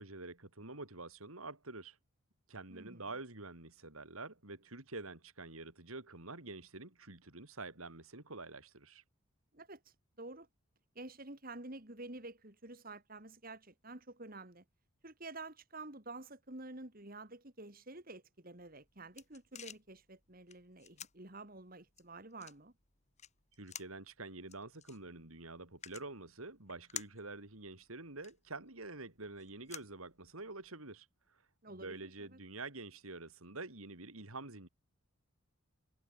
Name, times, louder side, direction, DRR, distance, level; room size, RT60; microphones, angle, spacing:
voice 1, 0.0-2.0 2.5-9.0 23.6-31.4 31.7-34.7, right 3 dB, 80° right, 3.7 m, -47 dB
voice 2, 2.7-3.1 9.5-10.5 10.9-14.6 15.0-22.7 31.6-32.4, right 2 dB, 40° right, 2.6 m, -50 dB
sound 1, 18.6-30.7, left 9 dB, 30° left, 2.4 m, -54 dB
head